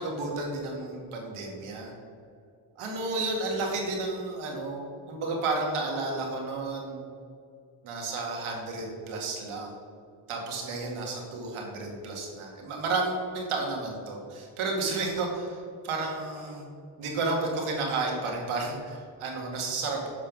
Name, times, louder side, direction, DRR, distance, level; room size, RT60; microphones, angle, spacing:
voice 1, 0.0-1.9 2.8-7.0 7.8-9.8 10.3-16.7 17.0-20.1, right 3 dB, 80° right, 0 dB, 1.9 m, -32 dB
7.2 x 5.3 x 6.1 m, 2.4 s
cardioid pair, 70°, 49 cm